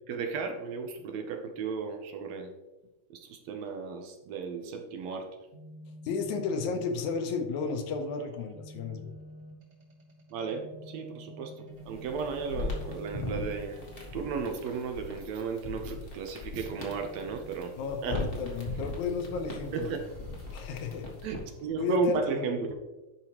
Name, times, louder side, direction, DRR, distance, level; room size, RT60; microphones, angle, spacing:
voice 1, 0.1-2.5 3.1-5.3 10.3-13.8 14.1-17.7 18.0-18.2 19.7-20.0 21.2-22.7, right 5 dB, 75° right, 5 dB, 1.8 m, -34 dB
sound 1, 5.5-14.6 16.5-18.5 20.0-21.9, equal, 45° right, 1.5 m, -51 dB
voice 2, 6.0-9.1 17.8-20.0 20.5-21.1 21.8-22.6, left 4 dB, 80° left, 6 dB, 2.1 m, -33 dB
sound 2, 11.8-21.6, left 3 dB, 60° left, 0.6 m, -39 dB
10.5 x 4.8 x 2.9 m, 1.1 s
omnidirectional pair, 3.4 m